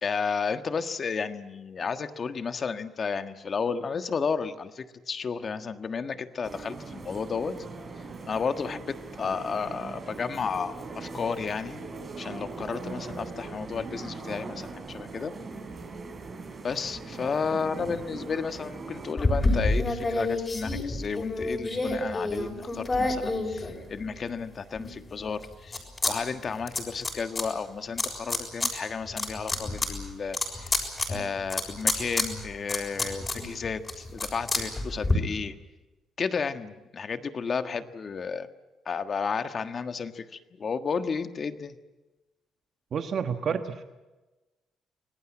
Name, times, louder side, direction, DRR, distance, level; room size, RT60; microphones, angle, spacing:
voice 1, 0.0-7.5 8.3-11.9 12.2-15.3 16.6-25.8 26.1-35.5 36.2-38.5 38.8-40.2 40.6-41.7, left 5 dB, 45° left, 8 dB, 1.5 m, -32 dB
sound 1, 6.4-19.1, right 3 dB, 40° right, 4.8 m, -40 dB
sound 2, 19.2-24.2 24.7-26.1 26.4-27.4 28.0-28.7 29.1-35.1, left 2 dB, 25° left, 6.8 m, -29 dB
voice 2, 42.9-43.8, right 6 dB, 55° right, 7 dB, 1.4 m, -30 dB
26.0 x 18.5 x 8.7 m, 1.1 s
cardioid pair, 90°, 0 cm